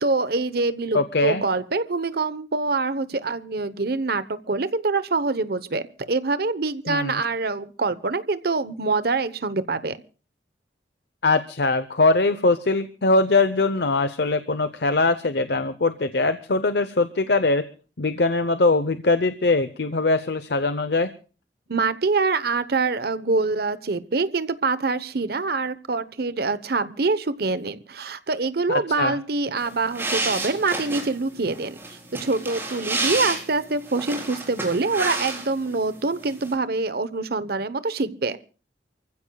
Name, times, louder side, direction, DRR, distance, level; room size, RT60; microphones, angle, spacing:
voice 1, 0.0-10.0 21.7-38.4, right 3 dB, 60° right, 0.9 m, -25 dB
voice 2, 0.9-1.4 6.9-7.2 11.2-17.6 18.0-21.1 28.7-29.2, left 3 dB, 65° left, 0.8 m, -22 dB
sound 1, 29.6-35.8 36.0-36.5, right 2 dB, 15° right, 4.4 m, -30 dB
29.0 x 15.0 x 2.3 m
head